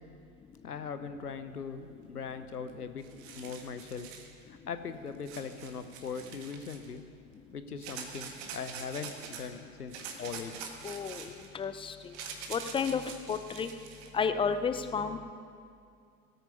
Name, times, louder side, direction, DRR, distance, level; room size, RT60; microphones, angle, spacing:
voice 1, 0.6-3.0 3.3-4.1 4.5-7.0 7.5-10.5, left 6 dB, 85° left, 10 dB, 0.9 m, -40 dB
sound 1, 2.7-2.8 3.0-4.3 5.2-6.9 7.8-9.5 9.9-14.1, right 6 dB, 50° right, 1.8 m, -45 dB
voice 2, 10.8-11.3 11.5-11.9 12.5-13.0 13.3-13.7 14.1-15.3, left 6 dB, 10° left, 10 dB, 0.5 m, -31 dB
17.5 x 8.9 x 5.5 m, 2.3 s
figure-of-eight pair, 80°, 45 cm